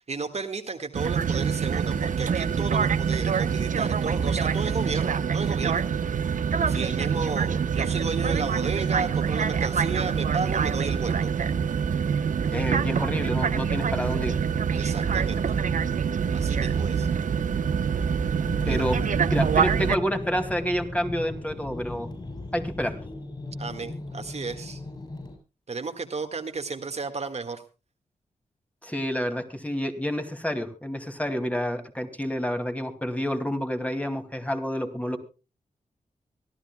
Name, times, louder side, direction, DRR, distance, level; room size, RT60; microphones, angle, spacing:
voice 1, 0.1-5.8 6.7-11.3 14.7-15.4 16.3-17.1 18.6-18.9 23.6-24.8 25.7-27.6, right 4 dB, 50° right, 6 dB, 1.7 m, -33 dB
sound 1, 0.9-20.0, right 7 dB, 70° right, 0.8 m, -25 dB
voice 2, 12.5-14.4 18.7-19.0 19.3-22.1 22.5-23.0 28.8-35.2, equal, 10° left, 6 dB, 2.4 m, -29 dB
sound 2, 18.4-25.4, left 2 dB, 35° left, 6.7 m, -38 dB
24.0 x 13.0 x 2.2 m, 0.31 s
cardioid pair, 70°, 14 cm